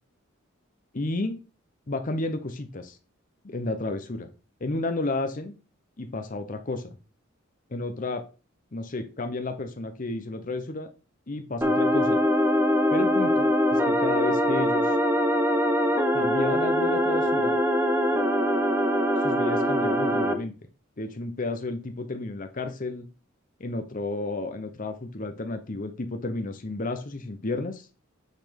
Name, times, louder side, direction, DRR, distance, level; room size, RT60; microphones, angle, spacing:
voice 1, 0.9-1.4 1.9-3.0 3.4-4.3 4.6-5.5 6.0-7.0 7.7-8.2 8.7-10.9 11.3-12.2 12.9-14.9 16.1-17.6 19.2-20.5 21.0-23.1 23.6-27.9, left 2 dB, 40° left, 7 dB, 0.8 m, -32 dB
sound 1, 11.6-20.3, equal, 10° right, 0.9 m, -23 dB
9.1 x 4.1 x 5.1 m, 0.34 s
head